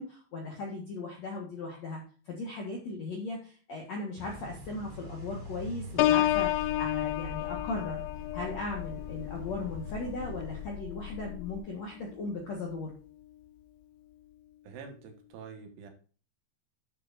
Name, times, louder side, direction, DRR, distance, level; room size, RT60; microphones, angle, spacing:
voice 1, 0.0-8.0 8.3-12.9, left 3 dB, 65° left, 0 dB, 1.7 m, -37 dB
sound 1, 4.1-10.6, left 1 dB, 35° right, 3.6 m, -45 dB
Piano, 6.0-11.6 12.1-12.4, left 15 dB, 85° left, 3.2 m, -31 dB
sound 2, 6.2-11.6, left 12 dB, 45° left, 2.0 m, -43 dB
voice 2, 14.6-15.9, right 6 dB, 75° right, 5 dB, 4.0 m, -46 dB
12.0 x 7.7 x 2.6 m, 0.39 s
omnidirectional pair, 5.7 m